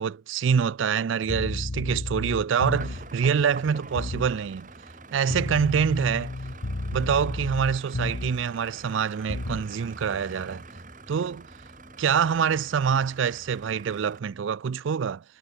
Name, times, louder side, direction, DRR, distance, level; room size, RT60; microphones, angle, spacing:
voice 1, 0.0-4.7 5.1-6.3 6.9-10.6 11.1-11.5 12.0-15.2, right 7 dB, 75° right, 0.4 m, -25 dB
sound 1, 1.2-3.1 4.0-4.4 5.3-8.5 9.3-9.7, left 1 dB, 85° left, 1.5 m, -32 dB
sound 2, 1.4-14.4, equal, 5° left, 6.0 m, -58 dB
sound 3, 2.8-14.2, right 3 dB, 40° right, 4.5 m, -45 dB
head